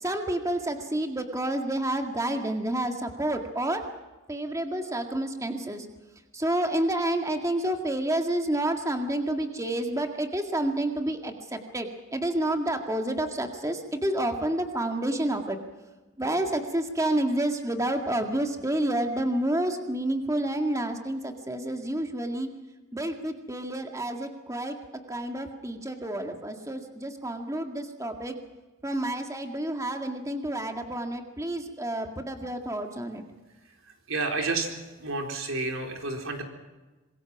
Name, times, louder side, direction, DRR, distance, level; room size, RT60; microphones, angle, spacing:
voice 1, 0.0-3.8 4.3-5.9 6.3-15.6 16.2-22.5 22.9-24.8 25.1-28.4 28.8-33.2, right 1 dB, 15° right, 4 dB, 2.0 m, -29 dB
voice 2, 34.1-34.7 35.0-36.4, right 3 dB, 70° right, 3 dB, 4.1 m, -30 dB
26.5 x 21.5 x 6.0 m, 1.2 s
head